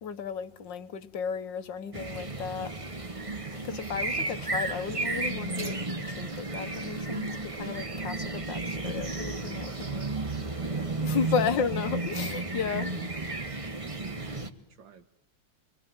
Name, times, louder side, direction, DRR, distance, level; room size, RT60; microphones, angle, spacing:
voice 1, 0.0-2.8 3.6-10.2 11.0-12.9, left 6 dB, 80° left, 1.9 m, -34 dB
sound 1, 1.9-14.5, right 3 dB, 20° right, 1.2 m, -33 dB
voice 2, 11.1-11.6 12.7-13.5 13.8-15.1, right 8 dB, 85° right, 2.0 m, -46 dB
26.5 x 22.5 x 8.9 m
omnidirectional pair, 2.0 m